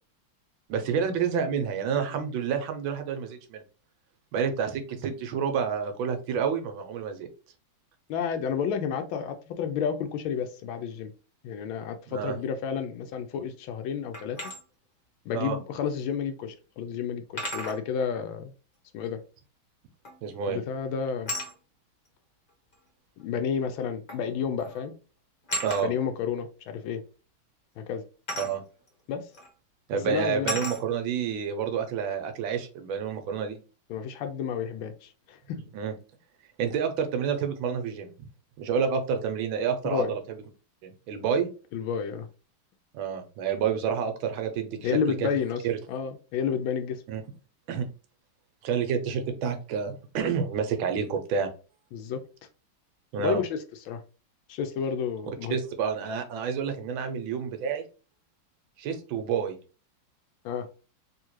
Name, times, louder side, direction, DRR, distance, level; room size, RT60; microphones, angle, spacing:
voice 1, 0.7-3.6 4.3-7.3 12.1-12.4 15.3-15.6 20.2-20.6 25.6-25.9 28.4-28.6 29.9-33.6 35.7-35.9 36.6-38.1 38.6-40.4 40.8-41.5 42.9-45.3 45.6-45.8 47.1-47.2 47.7-47.8 48.6-51.5 53.1-53.4 55.5-57.8 58.8-59.6, right 7 dB, 75° right, 1.4 m, -29 dB
voice 2, 8.1-11.1 11.4-14.4 15.3-18.5 18.9-19.2 20.4-21.3 23.2-24.9 25.8-27.0 27.8-28.0 29.1-29.3 30.1-30.6 33.9-35.6 39.8-40.1 41.7-42.3 44.8-45.6 45.9-47.0 51.9-52.2 53.2-53.6 53.9-54.0 54.5-55.6 60.4-60.7, left 7 dB, 75° left, 1.3 m, -31 dB
sound 1, 14.1-14.6 16.1-16.2 17.4-17.8 20.0-20.4 21.3-21.5 22.7-22.8 24.1-24.3 24.6-24.8 25.5-25.8 28.3-28.5 29.3-29.5 30.5-30.8, equal, 35° left, 0.9 m, -33 dB
3.6 x 2.8 x 3.0 m
omnidirectional pair, 2.3 m